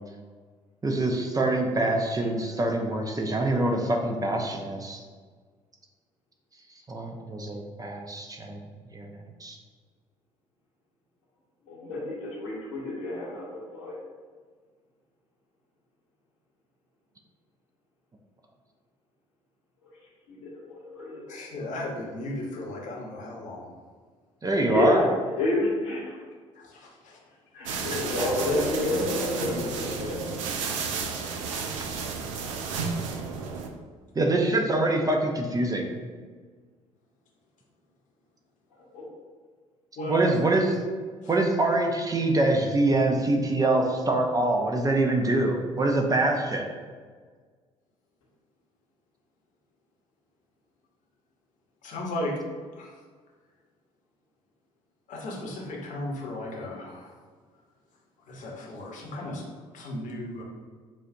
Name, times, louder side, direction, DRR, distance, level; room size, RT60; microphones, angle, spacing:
voice 1, 0.8-5.0 6.9-8.6 8.9-9.1 9.4-9.6 24.4-25.0 34.1-35.9 40.1-40.8 41.3-46.7, right 2 dB, 20° right, 2 dB, 0.6 m, -25 dB
voice 2, 11.7-14.0 20.3-21.4 24.7-25.0 25.4-26.2 27.5-30.2 38.7-39.0, left 2 dB, 75° left, -7 dB, 1.3 m, -29 dB
voice 3, 21.3-23.7 26.6-27.2 27.6-28.0 40.0-40.2 51.8-52.3 52.8-52.9 55.1-57.1 58.3-59.4 59.7-60.4, left 1 dB, 50° left, -1 dB, 1.1 m, -35 dB
sound 1, 27.7-33.7, right 5 dB, 75° right, 0.4 m, -32 dB
7.4 x 2.5 x 2.7 m, 1.6 s
figure-of-eight pair, 50°, 17 cm